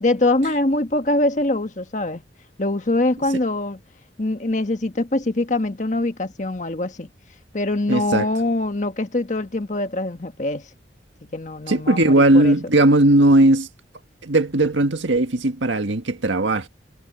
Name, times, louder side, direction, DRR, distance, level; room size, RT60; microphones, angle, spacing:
voice 1, 0.0-2.2 2.6-3.8 4.2-7.1 7.5-10.7 11.3-12.5, left 2 dB, 40° left, 1.3 m, -23 dB
voice 2, 7.9-8.3 11.7-13.7 14.2-16.7, right 1 dB, 85° right, 1.8 m, -17 dB
head